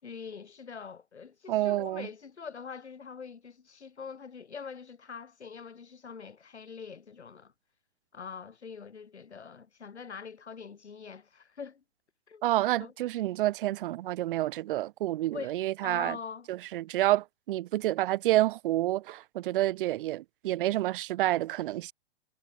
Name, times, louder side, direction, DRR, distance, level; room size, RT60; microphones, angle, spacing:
voice 1, 0.0-7.5 8.1-11.8 12.3-12.4 12.8-12.9 15.3-16.5, left 6 dB, 80° left, 5.7 m, -44 dB
voice 2, 1.5-2.1 12.4-16.2 16.5-21.9, right 15 dB, 50° right, 3.4 m, -29 dB
hypercardioid pair, 120°, 33 cm